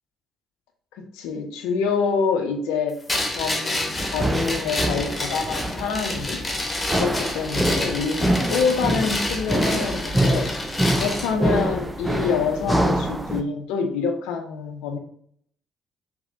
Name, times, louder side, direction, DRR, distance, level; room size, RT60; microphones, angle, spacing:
voice 1, 1.0-3.0 3.4-6.4 6.9-10.5 10.9-15.0, left 5 dB, 65° left, 5 dB, 0.5 m, -26 dB
sound 1, 3.1-11.3, left 1 dB, 25° left, 1.0 m, -29 dB
sound 2, 4.0-13.4, right 1 dB, 10° right, 0.6 m, -25 dB
4.8 x 2.9 x 2.7 m, 0.63 s
figure-of-eight pair, 45°, 0 cm